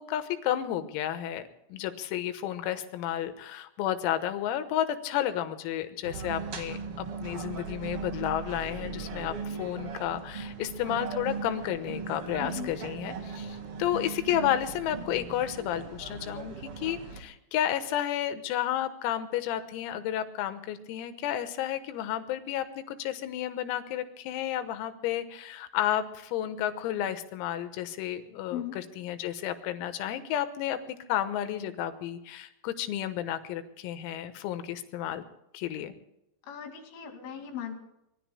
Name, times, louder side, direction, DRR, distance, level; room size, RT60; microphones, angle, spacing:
voice 1, 0.0-1.4 1.7-6.8 7.2-35.2 35.5-35.9, left 11 dB, 90° left, 10 dB, 4.0 m, -32 dB
sound 1, 6.0-17.2, right 5 dB, 70° right, 1.3 m, -38 dB
voice 2, 12.4-12.8 28.5-28.8 36.4-37.8, left 9 dB, 70° left, 4 dB, 4.7 m, -38 dB
25.5 x 24.0 x 2.2 m, 0.84 s
omnidirectional pair, 5.9 m